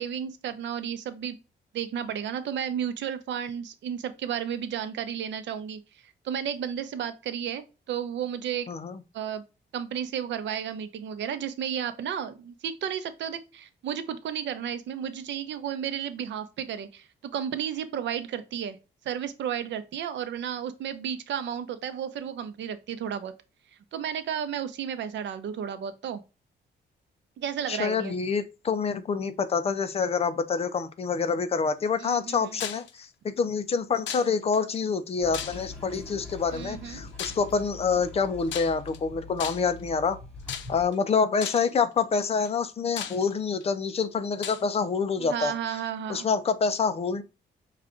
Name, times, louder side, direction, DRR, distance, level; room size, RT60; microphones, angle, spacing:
voice 1, 0.0-1.4 1.7-8.7 9.1-9.4 9.7-17.1 17.3-18.8 19.0-23.3 23.9-26.2 27.4-28.1 32.0-32.6 36.5-37.0 45.2-46.3, right 9 dB, 75° right, 0.6 m, -33 dB
voice 2, 8.7-9.0 27.7-40.2 40.7-45.8 46.1-47.2, left 5 dB, 30° left, 0.5 m, -27 dB
sound 1, 32.6-32.9 34.1-34.6 35.3-35.9 37.2-37.5 38.5-39.0 39.4-39.8 40.5-40.9 41.4-41.8 42.4-42.5 43.0-43.6 44.4-44.6, left 9 dB, 80° left, 0.6 m, -36 dB
Toilet flush, 35.2-40.9, left 3 dB, 5° left, 1.8 m, -44 dB
5.7 x 2.4 x 3.6 m
wide cardioid pair, 170°, 19 cm